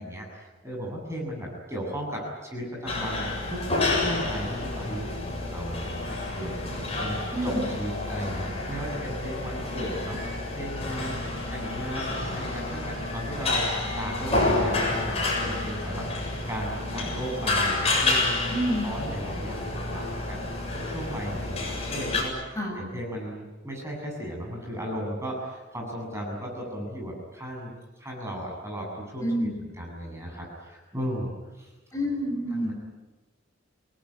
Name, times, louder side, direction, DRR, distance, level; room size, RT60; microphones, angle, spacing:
voice 1, 0.0-11.2 11.5-13.7 13.9-20.4 20.7-27.7 28.0-31.3 31.5-31.7 32.5-32.7, equal, 15° right, -1 dB, 8.0 m, -36 dB
sound 1, 2.8-22.2, left 2 dB, 30° left, 7.5 m, -29 dB
voice 2, 7.3-7.7 18.5-18.9 22.6-22.8 29.2-29.6 31.9-32.7, equal, 15° left, -1 dB, 7.4 m, -28 dB
28.5 x 19.0 x 9.9 m, 1.2 s
head